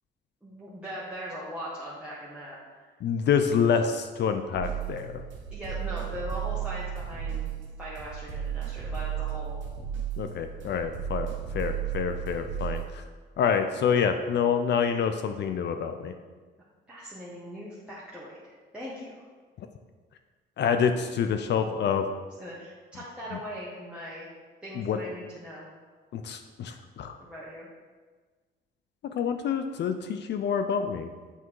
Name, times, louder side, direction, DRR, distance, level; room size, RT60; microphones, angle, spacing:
voice 1, 0.4-2.6 5.5-7.5 7.8-9.6 16.9-19.2 22.4-24.3 24.6-25.7 27.2-27.7, equal, 5° right, -8 dB, 1.4 m, -40 dB
voice 2, 3.0-5.2 10.2-13.0 13.4-16.1 20.6-22.1 24.8-25.0 26.1-27.2 29.2-31.1, left 7 dB, 60° left, 7 dB, 0.5 m, -27 dB
sound 1, 4.5-12.8, right 9 dB, 70° right, 1.5 m, -34 dB
8.1 x 3.6 x 4.6 m, 1.4 s
cardioid pair, 90°, 20 cm